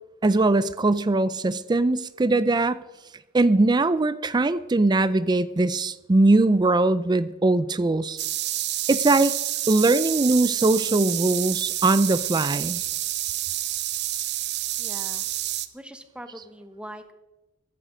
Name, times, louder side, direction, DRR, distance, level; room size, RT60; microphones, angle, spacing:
voice 1, 0.2-2.8 3.3-8.2 8.9-9.3 9.7-12.8, right 2 dB, 20° right, 16 dB, 0.4 m, -21 dB
sound 1, 8.2-15.7, right 14 dB, 60° right, 0.8 m, -28 dB
voice 2, 14.8-15.2 15.7-17.1, right 1 dB, 5° right, 9 dB, 1.1 m, -42 dB
14.5 x 14.5 x 5.1 m, 1.1 s
head